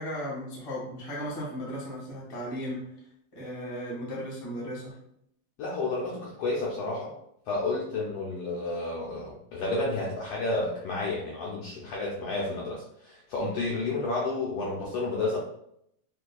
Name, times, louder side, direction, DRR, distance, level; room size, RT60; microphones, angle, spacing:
voice 1, 0.0-2.9 3.3-5.0, equal, 25° left, -5 dB, 0.7 m, -36 dB
voice 2, 5.6-7.1 7.5-15.4, left 2 dB, 75° left, -4 dB, 1.4 m, -31 dB
6.5 x 2.7 x 2.3 m, 0.73 s
omnidirectional pair, 3.4 m